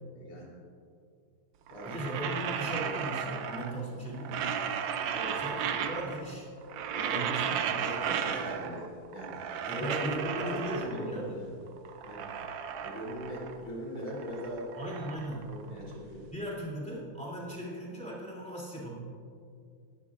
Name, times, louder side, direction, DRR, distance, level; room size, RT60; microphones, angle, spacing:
voice 1, 0.2-0.5 1.7-2.1 5.1-5.4 6.9-7.2 7.8-9.4 9.7-11.1 11.4-11.5 12.0-12.3 12.8-14.7 15.5-16.2, equal, 80° left, -5 dB, 4.4 m, -40 dB
sound 1, 1.7-3.8 4.1-6.3 6.6-8.9 9.1-11.2 11.7-13.7 14.0-16.2, right 8 dB, 70° right, 1.3 m, -35 dB
voice 2, 1.9-4.6 5.3-6.5 7.1-8.2 8.6-8.8 9.6-11.4 14.8-15.5 16.3-19.0, equal, 5° left, -5 dB, 2.7 m, -38 dB
19.0 x 12.5 x 2.5 m, 2.4 s
omnidirectional pair, 2.3 m